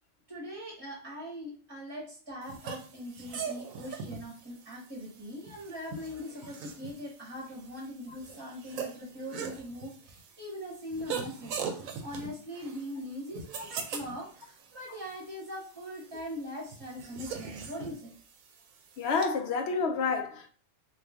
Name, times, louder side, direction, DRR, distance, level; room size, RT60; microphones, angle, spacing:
voice 1, 0.3-18.1, equal, 20° right, 0.9 m, -41 dB
sound 1, 2.4-19.3, right 6 dB, 85° right, 1.0 m, -42 dB
voice 2, 19.0-20.5, left 4 dB, 65° left, 0.7 m, -29 dB
3.1 x 2.4 x 3.4 m
omnidirectional pair, 1.4 m